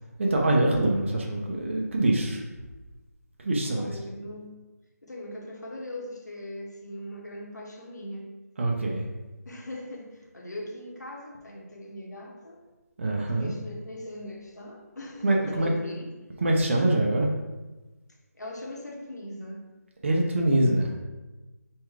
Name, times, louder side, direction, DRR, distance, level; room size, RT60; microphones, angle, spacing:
voice 1, 0.2-2.4 3.4-3.9 8.6-9.1 13.0-13.5 15.2-15.7 16.4-17.3 20.0-20.9, right 1 dB, 45° right, -1 dB, 0.8 m, -24 dB
voice 2, 3.6-4.5 5.0-8.3 9.5-12.6 13.3-16.1 18.3-19.7, left 1 dB, 80° left, 0 dB, 1.1 m, -40 dB
4.4 x 2.3 x 4.7 m, 1.1 s
figure-of-eight pair, 160°, 9 cm